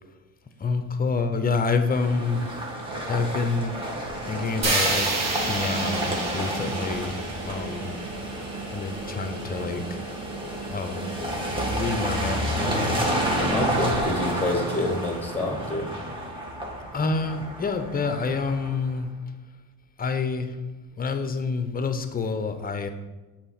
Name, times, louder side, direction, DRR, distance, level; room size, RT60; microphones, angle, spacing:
voice 1, 0.6-2.5 3.1-3.8 4.3-7.2 7.5-8.0 8.7-10.1 10.7-11.1 11.6-13.4 16.9-19.1 20.0-20.6 21.0-22.9, left 4 dB, 20° left, 9 dB, 0.7 m, -28 dB
sound 1, 1.9-18.9, right 1 dB, 15° right, 1.6 m, -30 dB
sound 2, 4.6-8.7, right 3 dB, 40° right, 1.3 m, -29 dB
voice 2, 13.5-15.9, left 1 dB, 5° left, 3 dB, 1.5 m, -27 dB
6.7 x 2.8 x 5.7 m, 1.2 s
supercardioid pair, 75°, 40 cm